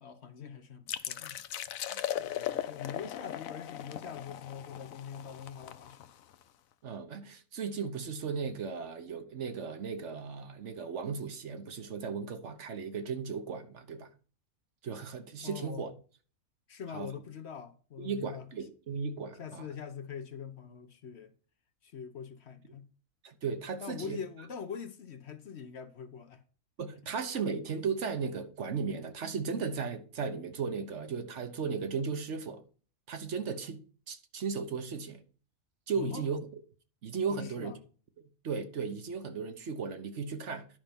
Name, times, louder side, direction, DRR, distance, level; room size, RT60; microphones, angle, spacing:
voice 1, 0.0-1.4 1.9-6.1 15.4-15.9 16.7-18.5 19.4-21.3 21.8-22.9 23.8-26.4 36.0-36.2 37.3-37.8, left 7 dB, 55° left, 1.1 m, -43 dB
sound 1, 0.9-6.4, left 11 dB, 85° left, 1.1 m, -38 dB
voice 2, 6.8-14.1 14.8-15.9 16.9-17.1 18.0-19.7 23.2-24.2 26.8-32.6 33.1-35.2 35.9-36.4 37.0-37.7 38.4-40.7, right 5 dB, 60° right, 1.3 m, -36 dB
10.5 x 5.7 x 5.2 m
omnidirectional pair, 1.4 m